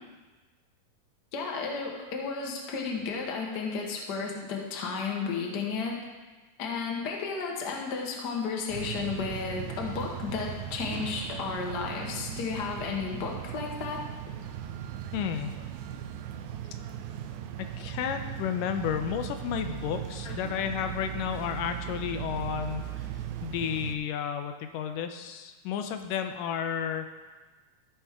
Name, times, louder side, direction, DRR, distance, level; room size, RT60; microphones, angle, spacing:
voice 1, 1.3-6.0 6.6-14.0 20.2-20.4, left 5 dB, 65° left, 0 dB, 1.0 m, -33 dB
sound 1, 8.7-24.0, right 10 dB, 80° right, 1.9 m, -38 dB
voice 2, 15.1-15.5 17.6-22.8 23.4-27.1, left 8 dB, 90° left, 7 dB, 2.2 m, -32 dB
14.0 x 5.7 x 3.6 m, 1.3 s
omnidirectional pair, 3.8 m